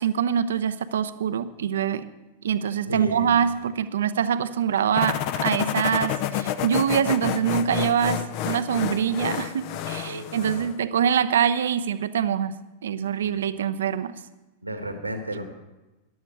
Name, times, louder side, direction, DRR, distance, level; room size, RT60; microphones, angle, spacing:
voice 1, 0.0-2.1 2.4-12.5 12.8-14.1, right 8 dB, 65° right, 13 dB, 0.7 m, -24 dB
voice 2, 2.9-3.4 10.1-10.7 13.2-13.3 14.6-15.5, right 1 dB, 85° right, 6 dB, 1.7 m, -33 dB
sound 1, 5.0-10.8, left 10 dB, 45° left, 0.8 m, -29 dB
14.5 x 11.0 x 5.9 m, 1.1 s
figure-of-eight pair, 90°, 0 cm